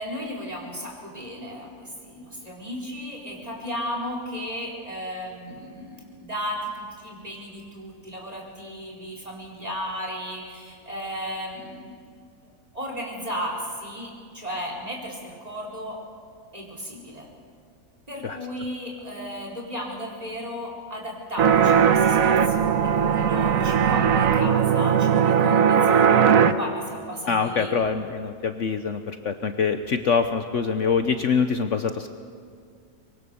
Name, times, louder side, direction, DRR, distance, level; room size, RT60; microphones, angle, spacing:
voice 1, 0.0-12.0 12.7-16.0 16.5-17.3 18.1-27.7, equal, 25° right, -1 dB, 4.6 m, -35 dB
sound 1, 21.4-26.5, right 7 dB, 65° right, 1.3 m, -19 dB
voice 2, 27.3-32.1, left 5 dB, 55° left, 7 dB, 1.1 m, -24 dB
24.5 x 23.0 x 7.0 m, 2.2 s
omnidirectional pair, 1.6 m